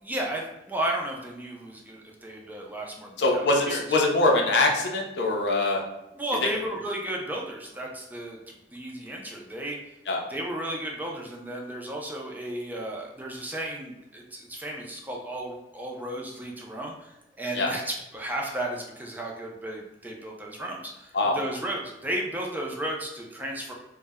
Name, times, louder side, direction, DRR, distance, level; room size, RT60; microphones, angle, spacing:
voice 1, 0.0-3.9 4.5-4.6 6.1-9.8 10.3-23.7, right 1 dB, 10° right, -1 dB, 0.3 m, -34 dB
voice 2, 3.2-5.8 10.1-10.2 17.5-17.7 21.1-21.4, left 2 dB, 70° left, 1 dB, 0.5 m, -23 dB
2.1 x 2.0 x 3.4 m, 0.96 s
head